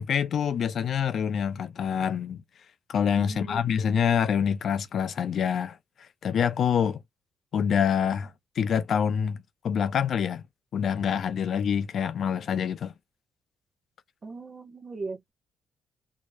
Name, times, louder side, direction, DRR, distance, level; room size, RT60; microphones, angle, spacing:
voice 1, 0.0-2.4 2.9-5.8 6.2-7.0 7.5-9.4 9.6-10.4 10.7-12.9, left 7 dB, 60° left, 0.4 m, -26 dB
voice 2, 3.2-3.6 14.2-15.3, right 3 dB, 35° right, 0.9 m, -38 dB
4.5 x 2.8 x 2.3 m
cardioid pair, 90°, 0 cm